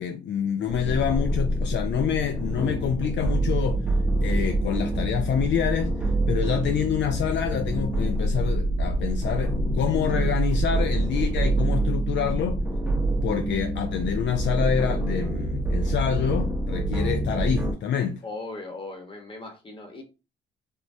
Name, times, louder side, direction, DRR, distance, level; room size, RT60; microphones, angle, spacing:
voice 1, 0.0-3.8 4.2-6.0 6.3-12.6 13.2-18.2, left 8 dB, 65° left, 0.4 m, -27 dB
sound 1, 0.7-17.7, right 1 dB, 5° right, 0.8 m, -26 dB
voice 2, 18.2-20.0, left 2 dB, 25° left, 1.0 m, -38 dB
3.4 x 2.1 x 2.6 m
cardioid pair, 90°, 20 cm